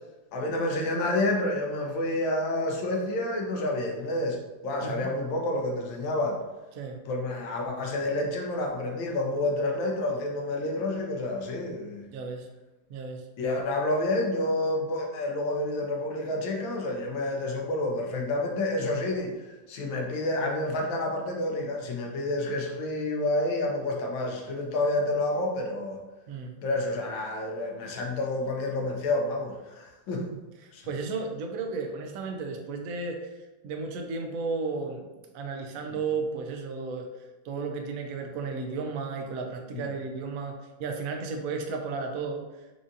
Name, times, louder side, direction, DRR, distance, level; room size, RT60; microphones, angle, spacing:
voice 1, 0.3-6.4 7.1-12.0 13.4-26.0 26.6-30.3 30.7-30.8 39.7-39.8, left 2 dB, 85° left, 0 dB, 1.5 m, -29 dB
voice 2, 4.8-5.1 6.8-7.0 12.1-12.5 12.9-13.2 26.3-26.6 30.6-33.3 33.6-35.1 35.3-37.1 37.4-42.4, right 4 dB, 85° right, 3 dB, 0.7 m, -33 dB
4.8 x 2.5 x 2.6 m, 1.1 s
omnidirectional pair, 2.1 m